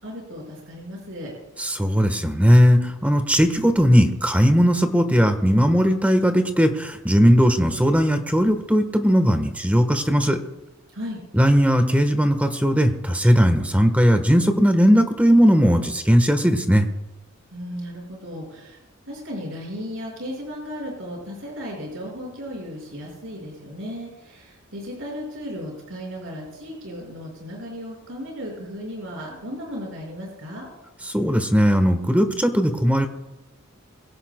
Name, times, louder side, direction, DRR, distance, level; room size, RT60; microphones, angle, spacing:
voice 1, 0.0-1.3 10.9-11.2 17.5-18.8 19.1-30.7, equal, 70° right, -2 dB, 5.3 m, -35 dB
voice 2, 1.6-10.4 11.3-16.9 31.1-33.1, equal, 5° right, 7 dB, 1.1 m, -18 dB
23.5 x 16.5 x 2.2 m, 0.98 s
head